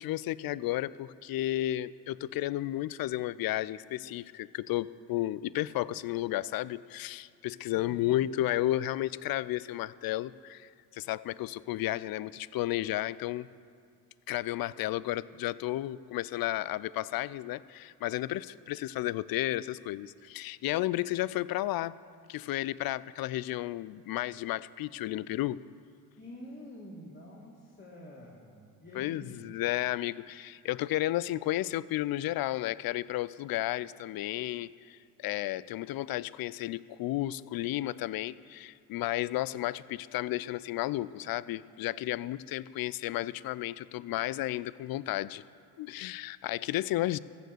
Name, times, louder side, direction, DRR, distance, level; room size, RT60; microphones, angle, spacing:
voice 1, 0.0-13.5 14.3-21.9 22.3-25.6 28.9-45.4 45.8-47.2, left 15 dB, 50° left, 19 dB, 0.5 m, -33 dB
voice 2, 26.2-29.4, left 1 dB, 20° left, -6 dB, 3.0 m, -48 dB
14.5 x 6.7 x 8.0 m, 2.3 s
hypercardioid pair, 65°, 49 cm